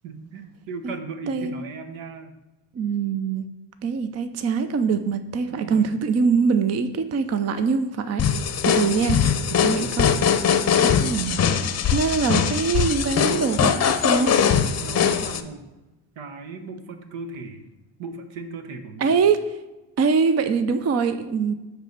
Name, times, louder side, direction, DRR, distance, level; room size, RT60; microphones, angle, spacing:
voice 1, 0.0-2.4 5.5-5.9 9.5-9.9 14.8-15.7 16.2-17.7 18.0-19.2, right 3 dB, 70° right, 7 dB, 1.2 m, -37 dB
voice 2, 1.3-1.6 2.7-3.5 3.8-9.2 9.5-10.1 10.8-11.4 11.9-14.3 19.0-19.4 20.0-21.5, right 5 dB, 30° right, 10 dB, 0.6 m, -23 dB
sound 1, 8.2-15.4, left 7 dB, 30° left, 0.7 m, -21 dB
8.2 x 3.3 x 6.5 m, 1.1 s
supercardioid pair, 75°, 49 cm